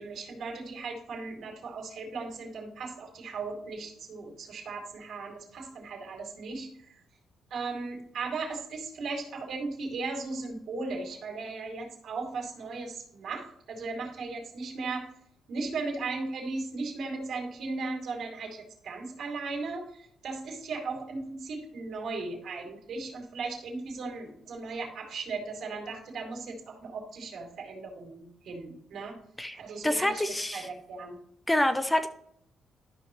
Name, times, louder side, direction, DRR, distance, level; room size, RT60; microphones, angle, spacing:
voice 1, 0.0-7.0 7.5-15.1 15.5-29.2 29.5-30.2 30.5-31.2, right 3 dB, 70° right, 0 dB, 2.8 m, -37 dB
voice 2, 29.8-30.7 31.5-32.1, left 1 dB, 10° left, 8 dB, 0.7 m, -26 dB
12.5 x 5.5 x 3.1 m, 0.69 s
cardioid pair, 90°, 0 cm